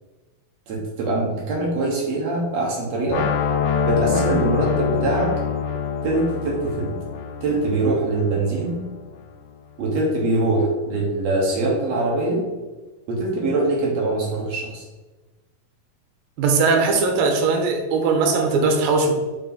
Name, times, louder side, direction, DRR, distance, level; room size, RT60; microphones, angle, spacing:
voice 1, 0.7-3.3 3.8-5.4 6.0-6.9 7.4-8.8 9.8-12.4 13.1-14.9, right 2 dB, 60° right, -3 dB, 1.9 m, -23 dB
sound 1, 3.1-9.0, left 7 dB, 90° left, 2.5 m, -25 dB
voice 2, 16.4-19.1, right 4 dB, 80° right, 3 dB, 2.7 m, -19 dB
6.0 x 4.8 x 3.9 m, 1.2 s
omnidirectional pair, 4.2 m